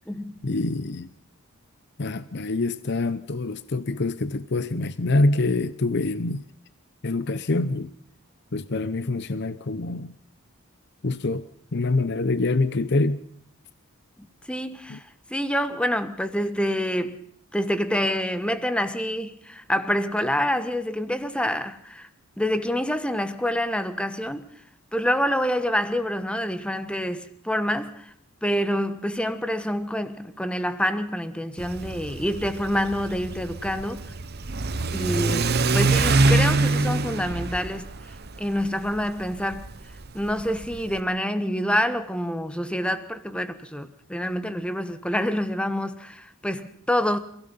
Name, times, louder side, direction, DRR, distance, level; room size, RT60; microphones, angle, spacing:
voice 1, 0.4-1.1 2.0-6.5 7.0-7.9 8.5-10.1 11.0-11.4 11.7-13.2 14.9-15.0, left 2 dB, 55° left, 0.8 m, -25 dB
voice 2, 14.5-15.0 15.3-17.2 17.5-22.1 22.4-24.5 24.9-28.1 28.4-34.0 34.9-37.9 38.4-39.7 40.1-47.2, equal, 5° left, 1.3 m, -27 dB
Car / Accelerating revving vroom, 31.6-41.0, right 3 dB, 50° right, 1.1 m, -25 dB
29.5 x 16.0 x 5.6 m
head